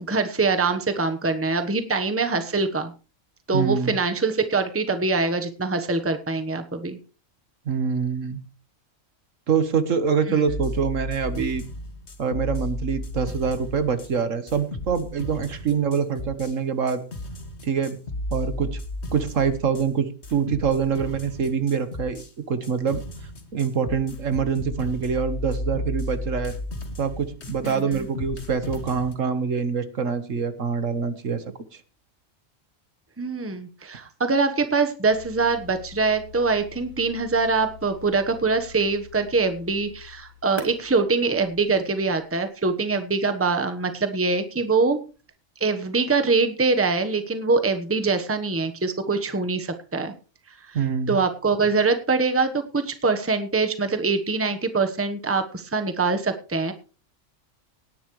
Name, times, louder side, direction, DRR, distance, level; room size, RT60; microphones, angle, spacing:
voice 1, 0.0-2.9 3.5-7.0 10.3-10.4 27.6-28.1 33.2-45.0 45.6-50.1 51.1-56.7, right 4 dB, 10° right, 8 dB, 1.1 m, -24 dB
voice 2, 3.5-4.0 7.6-8.4 9.5-11.7 12.2-17.0 17.6-18.0 18.3-18.8 19.1-22.2 22.5-23.0 23.5-26.5 27.0-31.4 31.7-31.8 50.7-51.2, right 6 dB, 70° right, 11 dB, 1.7 m, -25 dB
sound 1, 10.5-14.1 14.5-16.6 16.9-19.9 20.2-22.3 22.6-29.1, left 1 dB, 55° left, 2.1 m, -34 dB
sound 2, 35.0-42.0, left 4 dB, 35° left, 3.1 m, -45 dB
18.0 x 10.5 x 3.2 m, 0.34 s
omnidirectional pair, 1.4 m